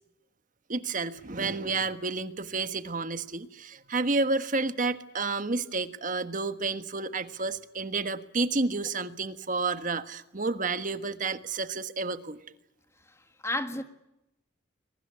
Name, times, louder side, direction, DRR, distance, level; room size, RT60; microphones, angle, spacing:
voice 1, 0.7-12.4, right 3 dB, 45° right, 1.5 m, -30 dB
voice 2, 13.1-13.8, left 1 dB, 15° left, 1.7 m, -33 dB
24.5 x 23.0 x 9.7 m
head